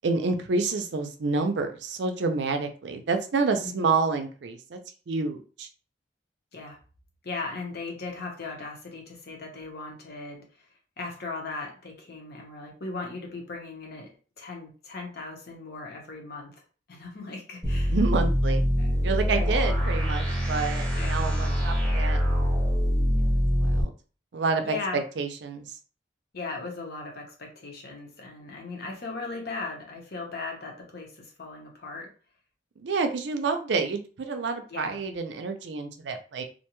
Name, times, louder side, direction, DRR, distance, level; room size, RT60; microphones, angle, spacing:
voice 1, 0.0-4.8 5.1-5.7 17.9-18.6 19.0-22.4 23.2-23.9 24.3-25.6 32.8-36.4, right 4 dB, 75° right, 6 dB, 0.4 m, -28 dB
voice 2, 3.6-3.9 6.5-6.8 7.2-10.7 11.0-14.1 14.4-16.5 16.9-18.0 18.8-18.9 19.3-19.8 21.0-21.5 24.6-25.0 26.3-32.1 34.7-35.0, left 3 dB, 60° left, 0 dB, 0.8 m, -38 dB
sound 1, 17.6-23.8, equal, 5° left, 1.0 m, -24 dB
2.5 x 2.2 x 2.9 m, 0.38 s
head